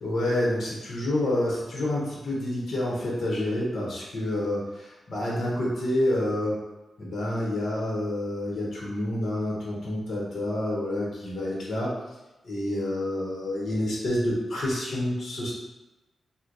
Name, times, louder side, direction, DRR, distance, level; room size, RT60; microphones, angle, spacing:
voice 1, 0.0-6.6 7.0-11.9 12.4-15.5, left 1 dB, 50° left, -5 dB, 1.0 m, -28 dB
3.1 x 2.1 x 3.8 m, 1.1 s
wide cardioid pair, 165°, 0 cm